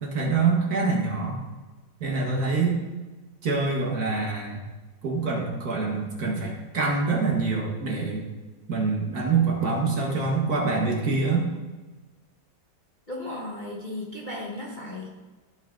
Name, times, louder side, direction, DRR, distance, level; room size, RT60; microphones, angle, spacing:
voice 1, 0.0-1.4 2.0-2.8 3.4-4.6 5.0-8.2 8.7-11.4, right 4 dB, 50° right, -1 dB, 1.9 m, -25 dB
voice 2, 13.1-15.1, left 1 dB, 25° left, -4 dB, 1.3 m, -35 dB
14.0 x 5.2 x 3.9 m, 1.2 s
omnidirectional pair, 2.1 m